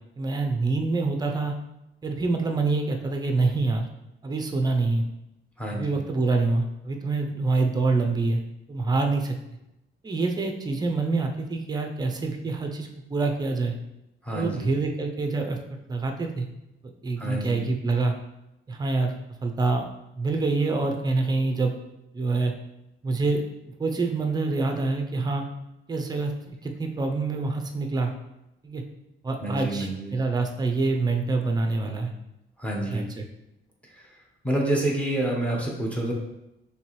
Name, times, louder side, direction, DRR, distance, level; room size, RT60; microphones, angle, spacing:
voice 1, 0.2-1.5 2.0-3.9 4.2-5.1 5.7-8.4 8.7-9.3 10.0-13.7 14.3-15.6 15.9-16.5 16.8-18.1 18.7-19.1 19.4-19.8 20.2-21.7 22.1-22.5 23.0-23.4 23.8-25.5 25.9-28.1 28.6-28.8 29.2-32.1 32.9-33.2, right 3 dB, 20° right, 3 dB, 0.5 m, -26 dB
voice 2, 5.6-6.0 14.2-14.7 17.2-17.6 29.4-30.2 32.6-33.0 33.9-34.1 34.4-36.1, right 1 dB, 5° left, -1 dB, 0.8 m, -28 dB
4.4 x 3.3 x 3.0 m, 0.89 s
cardioid pair, 140°, 21 cm